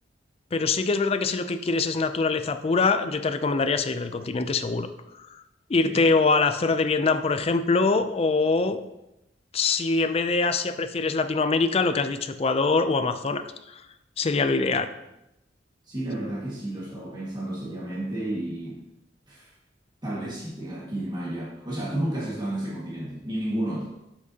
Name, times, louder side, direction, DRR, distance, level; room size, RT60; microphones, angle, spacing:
voice 1, 0.5-4.9 5.2-5.4 5.7-8.8 9.5-13.4 13.7-13.8 14.2-14.9, left 4 dB, 35° left, 9 dB, 0.4 m, -24 dB
voice 2, 15.9-18.8 19.3-19.5 20.0-23.9, right 1 dB, 25° right, -6 dB, 1.8 m, -32 dB
7.1 x 6.8 x 2.8 m, 0.89 s
head